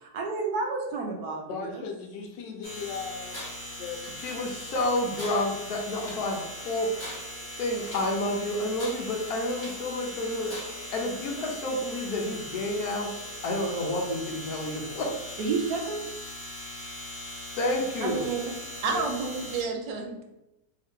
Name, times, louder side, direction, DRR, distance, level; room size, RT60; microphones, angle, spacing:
voice 1, 0.0-1.8 15.4-16.0, right 4 dB, 70° right, 0 dB, 1.1 m, -30 dB
voice 2, 1.5-3.4 3.8-4.0 14.8-15.0 18.9-19.1, left 5 dB, 85° left, 2 dB, 1.3 m, -37 dB
sound 1, 2.6-19.6, equal, 25° right, 0.6 m, -40 dB
Tools, 3.3-3.7 4.0-4.7 5.1-6.3 6.8-8.2 8.7-9.9 10.4-11.0, equal, 20° left, 0.7 m, -44 dB
voice 3, 4.2-7.0 7.6-13.1 13.4-15.2 17.6-18.2, left 1 dB, 65° left, 0 dB, 1.1 m, -30 dB
voice 4, 18.0-18.6 18.8-20.2, right 4 dB, 90° right, 3 dB, 1.4 m, -30 dB
3.5 x 2.7 x 3.6 m, 0.91 s
omnidirectional pair, 1.9 m